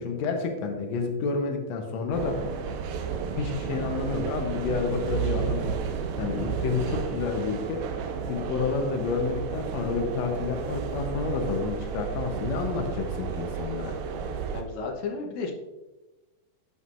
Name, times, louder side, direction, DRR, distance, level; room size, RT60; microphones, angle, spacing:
voice 1, 0.0-2.4 3.4-5.8 6.2-7.8 8.3-13.9, left 4 dB, 85° left, 4 dB, 1.5 m, -29 dB
sound 1, 2.1-14.6, right 6 dB, 85° right, 2.7 m, -32 dB
voice 2, 14.5-15.5, left 4 dB, 65° left, 1 dB, 1.9 m, -33 dB
11.0 x 7.8 x 2.5 m, 1.1 s
omnidirectional pair, 4.4 m